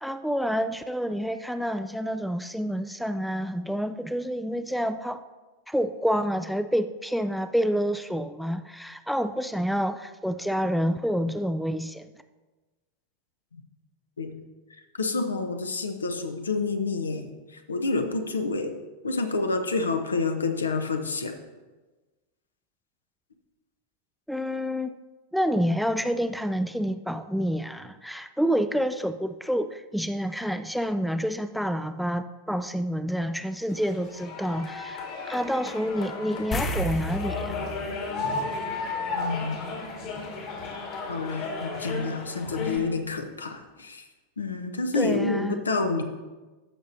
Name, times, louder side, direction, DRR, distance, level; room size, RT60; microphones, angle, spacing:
voice 1, 0.0-5.2 5.7-12.1 24.3-25.0 25.3-35.0 35.3-37.6 44.9-45.7, equal, ahead, 11 dB, 0.3 m, -28 dB
voice 2, 14.9-18.7 19.0-21.3 39.2-39.6 41.1-44.1 44.4-46.0, left 3 dB, 75° left, 7 dB, 0.8 m, -28 dB
sound 1, 33.7-42.8, left 3 dB, 45° left, 1.9 m, -34 dB
sound 2, 36.5-39.3 39.6-39.8 42.7-42.8 43.1-43.2, left 1 dB, 20° left, 0.8 m, -33 dB
14.0 x 6.2 x 2.7 m, 1.2 s
figure-of-eight pair, 90°, 0 cm